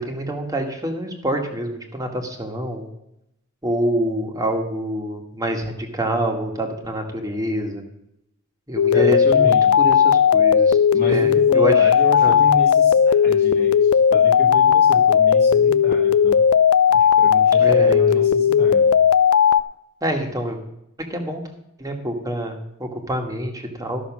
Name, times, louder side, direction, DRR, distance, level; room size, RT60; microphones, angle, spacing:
voice 1, 0.0-2.9 3.6-7.8 8.7-11.9 12.2-12.4 17.6-18.2 20.0-20.6 21.1-21.4 21.8-24.0, right 1 dB, 15° right, 3 dB, 1.6 m, -26 dB
sound 1, 8.8-19.6, left 7 dB, 85° left, 0.4 m, -16 dB
voice 2, 8.9-9.8 10.9-16.4 16.9-19.0, equal, 40° left, -3 dB, 1.4 m, -31 dB
13.0 x 6.3 x 6.1 m, 0.82 s
head